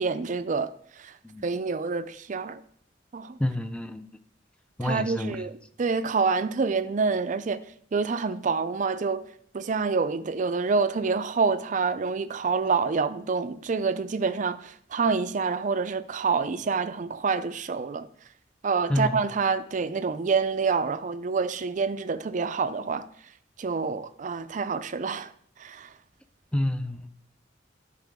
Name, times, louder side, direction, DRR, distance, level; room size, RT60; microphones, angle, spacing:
voice 1, 0.0-1.2 1.4-2.6 3.1-3.4 4.8-5.5 5.8-7.6 7.9-9.3 9.5-18.1 18.6-23.1 23.6-25.3 25.6-25.9, right 4 dB, 45° right, 0.4 m, -27 dB
voice 2, 3.4-4.1 4.8-5.4 18.9-19.2 26.5-27.1, left 1 dB, 5° left, 0.5 m, -28 dB
13.0 x 4.9 x 3.6 m
head